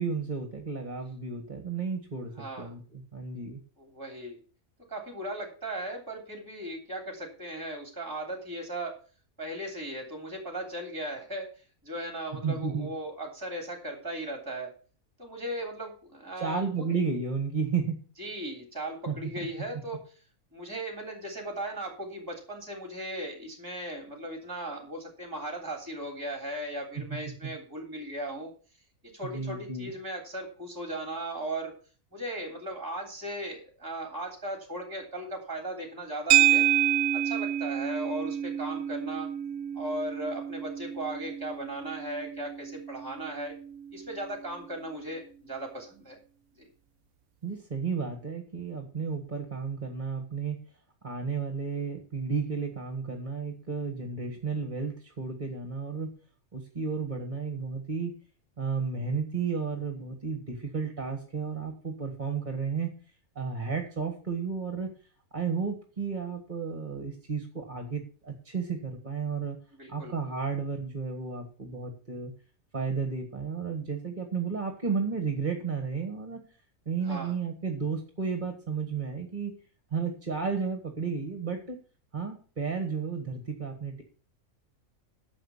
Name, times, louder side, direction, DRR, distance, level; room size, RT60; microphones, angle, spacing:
voice 1, 0.0-3.6 12.4-12.9 16.4-18.0 19.1-19.5 29.2-29.9 47.4-50.6 51.0-56.1 56.5-58.1 58.6-63.0 63.3-64.9 65.3-69.6 69.9-72.3 72.7-76.4 76.8-79.5 79.9-81.8 82.1-84.0, right 5 dB, 30° right, 5 dB, 1.7 m, -33 dB
voice 2, 2.4-2.7 3.8-4.4 4.9-8.9 9.4-11.5 11.8-14.7 15.2-16.9 18.2-20.0 20.5-28.5 29.1-31.7 32.1-36.6 37.1-39.3 39.7-43.5 43.9-46.2 46.6-46.7 69.8-70.1 77.0-77.4, right 1 dB, 15° right, 3 dB, 3.3 m, -37 dB
sound 1, 36.3-44.7, right 12 dB, 65° right, 0.9 m, -29 dB
11.0 x 6.6 x 7.1 m, 0.39 s
omnidirectional pair, 1.5 m